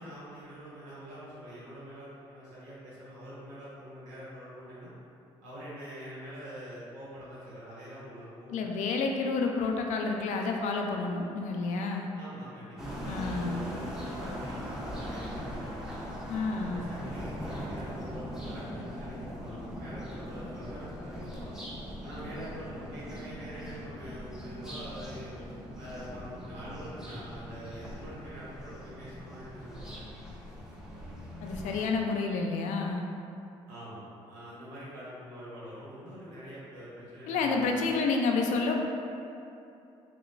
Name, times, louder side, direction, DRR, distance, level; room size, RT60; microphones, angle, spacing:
voice 1, 0.0-4.9 5.4-8.5 12.1-16.1 16.6-21.5 22.0-25.4 25.8-30.1 33.7-37.8, equal, 85° right, -9 dB, 1.2 m, -45 dB
voice 2, 8.5-12.1 13.0-13.6 16.3-16.9 31.4-33.0 37.3-38.8, left 4 dB, 75° left, 2 dB, 0.4 m, -29 dB
sound 1, 12.8-31.9, equal, 5° right, 0.8 m, -40 dB
4.9 x 2.2 x 2.5 m, 2.7 s
supercardioid pair, 70°, 13 cm